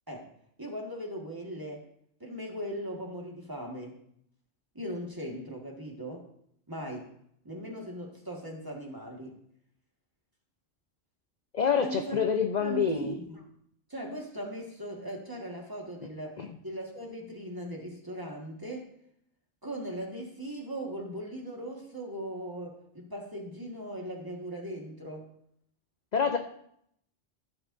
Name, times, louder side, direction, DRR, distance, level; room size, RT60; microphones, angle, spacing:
voice 1, 0.6-1.8 2.2-3.9 4.7-6.3 6.7-7.1 7.4-9.4 11.8-12.2 12.6-13.5 13.9-18.9 19.6-25.3, right 1 dB, 15° right, 0 dB, 1.6 m, -39 dB
voice 2, 11.5-13.1 16.4-16.6 26.1-26.4, left 7 dB, 45° left, 5 dB, 0.6 m, -27 dB
14.0 x 7.9 x 2.6 m, 0.69 s
omnidirectional pair, 1.3 m